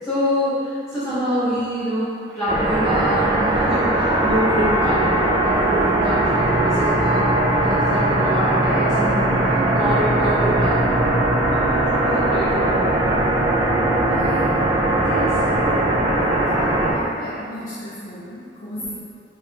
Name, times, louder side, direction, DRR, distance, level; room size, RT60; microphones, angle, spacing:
voice 1, 0.0-7.3 7.6-10.8 11.5-13.1 13.4-13.5 15.0-15.4 18.8-18.9, equal, 15° left, -17 dB, 1.3 m, -26 dB
sound 1, 2.5-16.9, right 1 dB, 20° right, 0.5 m, -19 dB
voice 2, 14.0-14.7 16.3-18.9, left 1 dB, 45° left, -8 dB, 0.5 m, -35 dB
4.6 x 3.5 x 3.0 m, 2.5 s
head